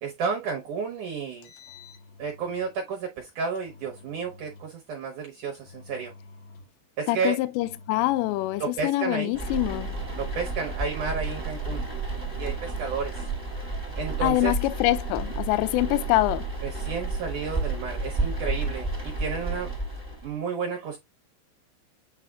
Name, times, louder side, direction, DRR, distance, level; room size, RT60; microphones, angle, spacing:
voice 1, 0.0-1.5 2.2-6.1 7.0-7.4 8.6-9.4 10.1-11.8 12.4-13.3 14.0-14.6 16.6-19.7 20.2-21.0, right 5 dB, 75° right, 1.9 m, -32 dB
Engine, 1.3-2.7 3.6-4.7 5.5-6.8 7.5-8.8 9.5-10.9 11.5-12.8, left 3 dB, 70° left, 2.3 m, -49 dB
voice 2, 7.1-10.0 14.2-16.5, left 18 dB, 85° left, 2.8 m, -25 dB
sound 1, 9.3-20.4, right 3 dB, 5° right, 2.8 m, -31 dB
8.4 x 4.9 x 2.3 m
omnidirectional pair, 5.0 m